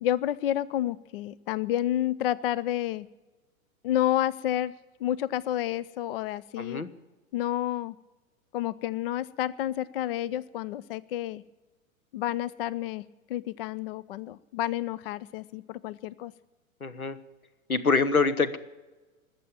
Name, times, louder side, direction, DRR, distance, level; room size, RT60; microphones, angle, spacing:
voice 1, 0.0-3.1 3.8-4.7 5.0-6.8 7.3-8.0 8.5-11.4 12.1-13.0 13.3-16.3, left 12 dB, 45° left, 20 dB, 0.4 m, -30 dB
voice 2, 6.6-6.9 16.8-17.2 17.7-18.6, left 4 dB, 85° left, 14 dB, 1.1 m, -25 dB
20.0 x 7.5 x 8.8 m, 1.2 s
figure-of-eight pair, 100°, 42 cm